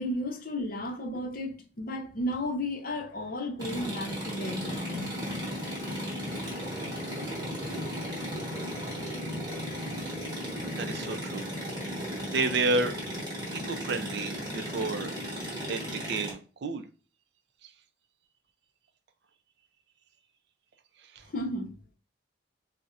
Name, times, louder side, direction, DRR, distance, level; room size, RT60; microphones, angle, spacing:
voice 1, 0.0-5.1 21.3-21.7, left 1 dB, 45° left, 0.6 m, -33 dB
sound 1, 3.6-16.3, equal, 20° right, 1.1 m, -35 dB
voice 2, 10.8-11.5 12.2-12.9 13.5-15.1 15.7-16.8 17.6-17.7 21.1-21.2, right 3 dB, 55° right, 0.4 m, -31 dB
4.0 x 2.1 x 2.4 m
head